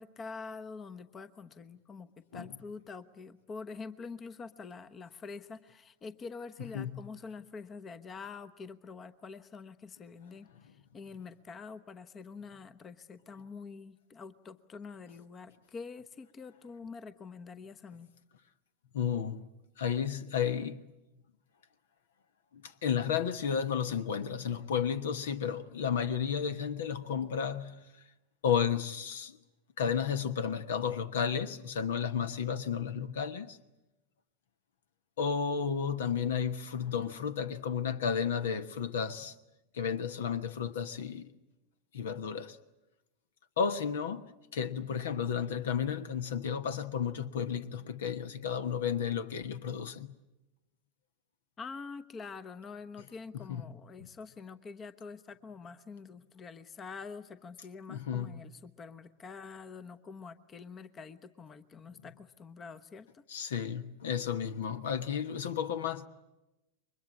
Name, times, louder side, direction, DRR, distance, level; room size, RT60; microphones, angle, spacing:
voice 1, 0.0-18.1 51.6-63.2, left 4 dB, 20° left, 1.1 m, -46 dB
voice 2, 18.9-19.5 19.8-20.9 22.5-27.9 28.4-29.4 29.8-33.6 35.2-39.3 39.7-41.3 41.9-42.6 43.6-50.2 53.5-53.6 54.0-54.1 57.9-58.3 63.3-66.1, left 7 dB, 60° left, 1.2 m, -32 dB
29.5 x 24.0 x 8.5 m
figure-of-eight pair, 90°, 0 cm